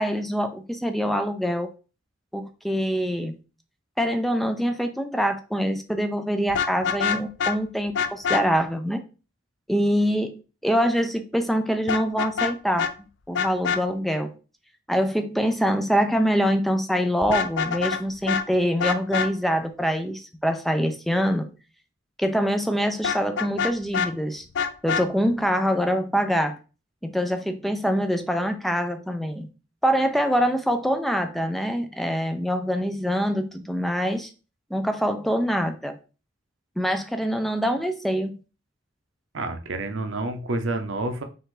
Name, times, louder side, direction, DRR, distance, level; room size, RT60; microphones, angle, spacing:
voice 1, 0.0-1.7 2.3-3.4 4.0-9.0 9.7-12.9 13.3-14.3 14.9-21.5 22.2-24.4 24.8-26.5 27.0-29.5 29.8-34.3 34.7-36.0 36.8-38.4, equal, ahead, 7 dB, 0.4 m, -24 dB
Vehicle horn car horn honking, 6.5-7.6 7.9-8.4 11.9-12.5 12.8-12.9 13.3-13.8 17.2-18.0 18.3-18.4 18.8-19.3 23.0-24.1 24.5-25.1, left 6 dB, 65° left, 0.4 m, -25 dB
voice 2, 39.3-41.2, right 2 dB, 80° right, 7 dB, 0.7 m, -29 dB
5.3 x 2.5 x 3.8 m, 0.34 s
head